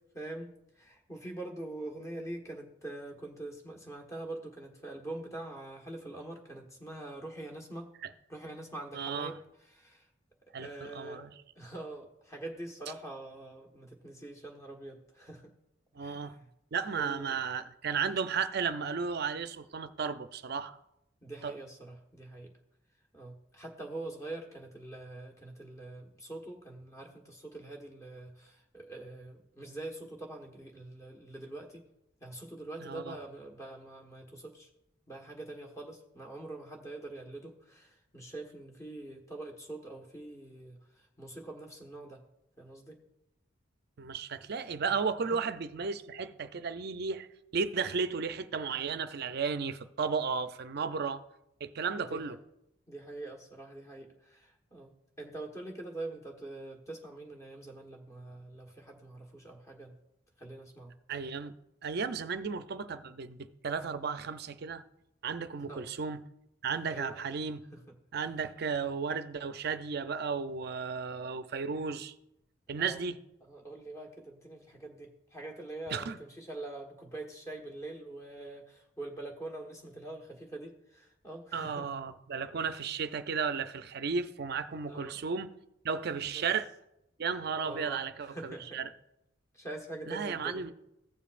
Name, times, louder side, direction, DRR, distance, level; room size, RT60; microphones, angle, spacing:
voice 1, 0.1-7.9 8.3-9.4 9.7-10.1 10.6-11.2 11.6-15.5 16.0-16.5 16.9-17.3 21.2-22.5 23.1-31.8 32.2-34.7 35.1-40.8 41.2-42.2 42.6-43.0 45.3-45.4 52.0-52.3 52.9-54.9 55.2-60.0 60.4-60.9 65.6-65.9 66.9-67.2 67.7-67.9 72.8-73.0 73.4-81.9 84.9-85.2 86.3-86.4 87.6-88.8 89.5-90.7, right 2 dB, 15° left, 1.3 m, -44 dB
voice 2, 8.9-9.3 10.5-11.3 16.0-16.4 16.7-20.8 21.4-21.5 32.8-33.2 44.0-47.3 47.5-51.2 51.6-52.4 61.1-61.5 61.8-64.8 65.2-66.2 66.6-67.6 68.1-72.1 72.7-73.2 75.9-76.2 81.5-85.5 85.8-86.7 87.2-88.9 90.1-90.7, right 5 dB, 55° right, 0.5 m, -34 dB
15.5 x 7.1 x 2.5 m
head